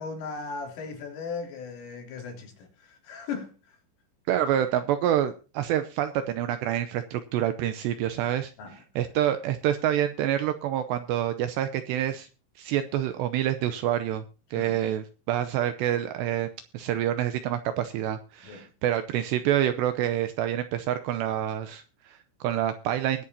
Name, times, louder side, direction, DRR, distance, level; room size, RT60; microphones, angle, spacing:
voice 1, 0.0-3.8 8.6-8.8 14.5-14.8 18.4-18.7, left 5 dB, 80° left, 5.8 m, -37 dB
voice 2, 4.3-8.5 9.0-12.3 12.6-14.2 14.5-16.5 16.7-23.2, right 11 dB, 80° right, 2.5 m, -27 dB
21.5 x 8.6 x 2.9 m
omnidirectional pair, 5.7 m